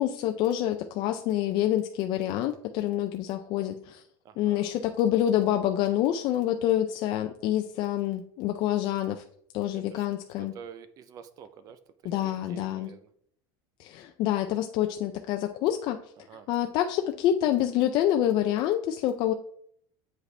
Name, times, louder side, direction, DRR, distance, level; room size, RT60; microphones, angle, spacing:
voice 1, 0.0-4.0 4.4-9.2 9.5-10.5 12.0-12.9 13.8-16.0 16.5-19.3, left 12 dB, 45° left, 6 dB, 0.4 m, -27 dB
voice 2, 4.2-4.7 9.7-10.0 10.4-13.1 16.2-16.5, right 7 dB, 35° right, 12 dB, 0.5 m, -48 dB
8.0 x 4.9 x 3.3 m, 0.65 s
cardioid pair, 160°, 10 cm